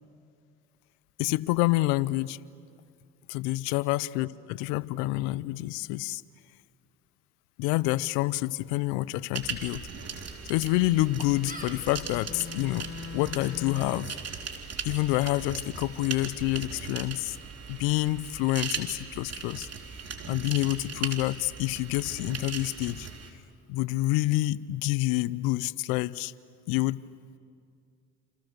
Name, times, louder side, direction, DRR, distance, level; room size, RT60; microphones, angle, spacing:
voice 1, 1.2-2.4 3.3-6.2 7.6-9.8 10.5-12.9 13.1-14.1 14.9-17.4 17.7-19.7 20.3-23.1 23.7-26.3 26.7-27.0, left 18 dB, 80° left, 19 dB, 0.7 m, -28 dB
sound 1, 9.3-23.3, right 6 dB, 45° right, 3.8 m, -39 dB
Gull seagull, 9.9-17.7, right 1 dB, 25° right, 7.7 m, -51 dB
Bowed string instrument, 10.8-14.2, left 7 dB, 40° left, 1.0 m, -42 dB
29.0 x 28.0 x 6.7 m, 2.3 s
hypercardioid pair, 60°, 34 cm